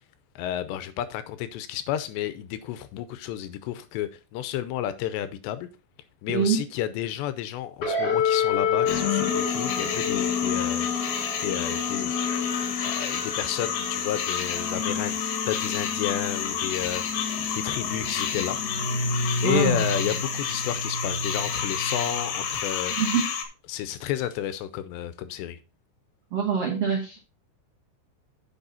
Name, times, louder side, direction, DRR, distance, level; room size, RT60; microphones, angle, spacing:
voice 1, 0.4-5.7 6.2-12.1 12.8-17.0 17.6-18.6 19.4-22.9 23.7-25.6, left 11 dB, 85° left, 2.8 m, -31 dB
voice 2, 6.3-6.6 19.4-19.9 23.0-23.3 26.3-27.2, right 6 dB, 85° right, 1.3 m, -25 dB
sound 1, 7.8-22.6, left 5 dB, 35° left, 2.2 m, -29 dB
sound 2, 8.9-23.4, left 7 dB, 65° left, 2.3 m, -31 dB
8.1 x 6.7 x 4.1 m
omnidirectional pair, 5.1 m